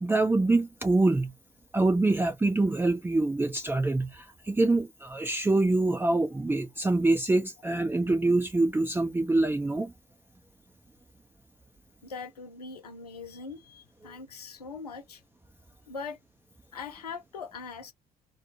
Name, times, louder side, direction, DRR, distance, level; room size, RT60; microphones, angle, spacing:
voice 1, 0.0-1.3 1.7-9.9, right 2 dB, 10° right, 0.5 m, -25 dB
voice 2, 12.0-15.2 15.9-16.2 16.7-17.9, left 5 dB, 90° left, 0.5 m, -41 dB
2.9 x 2.2 x 2.6 m
figure-of-eight pair, 50°, 20 cm